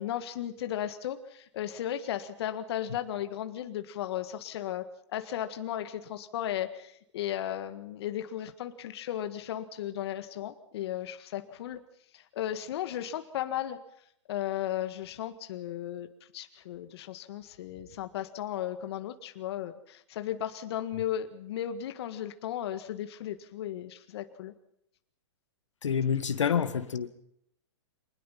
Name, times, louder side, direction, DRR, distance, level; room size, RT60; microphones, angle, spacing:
voice 1, 0.0-11.8 12.1-13.8 14.3-16.1 16.3-24.5, left 11 dB, 60° left, 9 dB, 1.7 m, -35 dB
voice 2, 25.8-27.1, left 7 dB, 85° left, 10 dB, 1.9 m, -27 dB
25.5 x 20.5 x 5.8 m, 0.73 s
hypercardioid pair, 130°, 15 cm